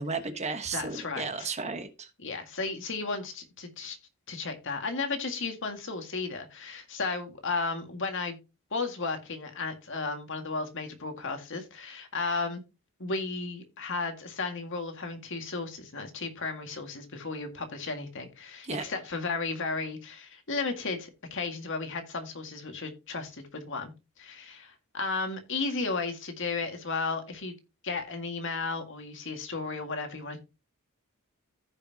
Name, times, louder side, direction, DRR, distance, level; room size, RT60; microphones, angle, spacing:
voice 1, 0.0-2.1 18.6-18.8, right 4 dB, 30° right, 1.1 m, -34 dB
voice 2, 0.7-1.5 2.2-4.0 4.3-8.4 8.7-12.6 13.0-23.9 24.2-27.5 27.8-30.4, left 3 dB, 60° left, 1.8 m, -34 dB
15.0 x 5.7 x 2.8 m
head